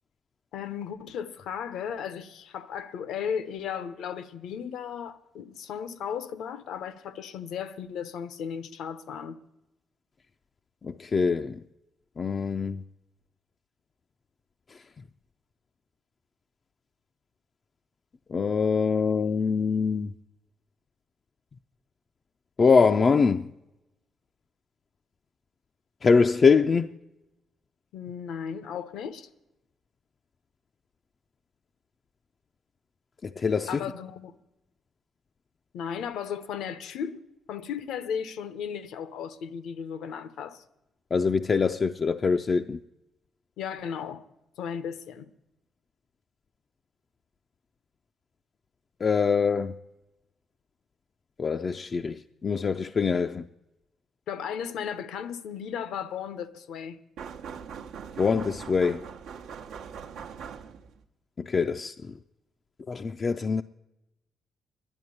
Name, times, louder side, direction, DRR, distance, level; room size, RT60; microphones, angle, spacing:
voice 1, 0.5-9.4 27.9-29.3 33.7-34.4 35.7-37.2 37.5-40.6 43.6-44.2 44.6-45.3 54.3-57.0, left 7 dB, 80° left, 0.8 m, -35 dB
voice 2, 10.8-11.6 12.2-12.8 18.3-20.1 22.6-23.5 26.0-26.9 33.2-33.7 41.1-42.8 49.0-49.7 51.4-53.4 58.2-59.0 61.4-61.9 62.9-63.6, left 5 dB, 40° left, 0.4 m, -24 dB
sound 1, 57.2-61.0, right 7 dB, 85° right, 0.9 m, -41 dB
11.0 x 8.6 x 9.7 m
cardioid pair, 90°, 0 cm